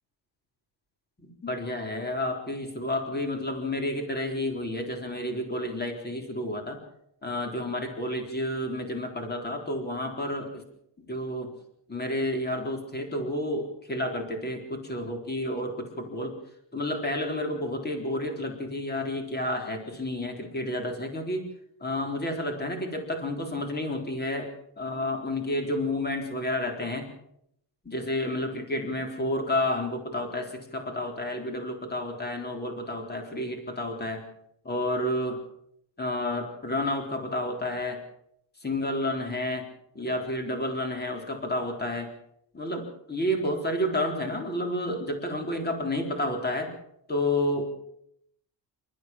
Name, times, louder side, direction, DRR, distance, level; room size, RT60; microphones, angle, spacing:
voice 1, 1.2-6.8 7.2-10.6 11.1-11.5 11.9-16.4 16.7-21.4 21.8-24.5 24.8-27.1 27.8-34.3 34.6-35.4 36.0-38.0 38.6-39.7 39.9-42.1 42.5-46.7 47.1-47.6, left 1 dB, 20° left, 4 dB, 4.0 m, -30 dB
28.0 x 14.0 x 7.4 m, 0.73 s
cardioid pair, 155°, 47 cm